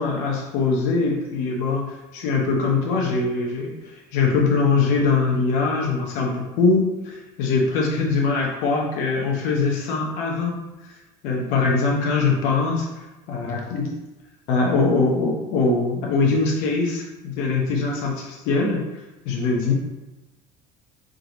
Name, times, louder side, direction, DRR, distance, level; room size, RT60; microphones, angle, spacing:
voice 1, 0.0-3.7 4.1-10.6 11.2-12.9 13.3-13.9 14.5-18.8 19.2-19.7, left 4 dB, 75° left, -1 dB, 0.9 m, -22 dB
3.8 x 2.9 x 3.8 m, 1.0 s
cardioid pair, 125°, 13 cm